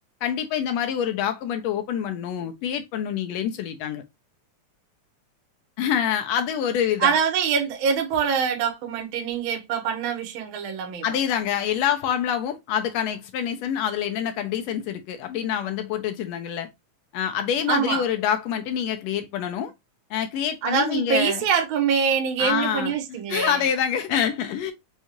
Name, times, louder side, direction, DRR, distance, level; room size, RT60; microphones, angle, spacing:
voice 1, 0.2-4.0 5.8-7.1 11.0-16.7 17.1-19.7 20.1-21.4 22.4-24.7, left 9 dB, 80° left, 1.6 m, -26 dB
voice 2, 7.0-11.2 17.7-18.0 20.6-23.6, right 7 dB, 70° right, 1.2 m, -24 dB
5.3 x 2.4 x 2.8 m
omnidirectional pair, 3.5 m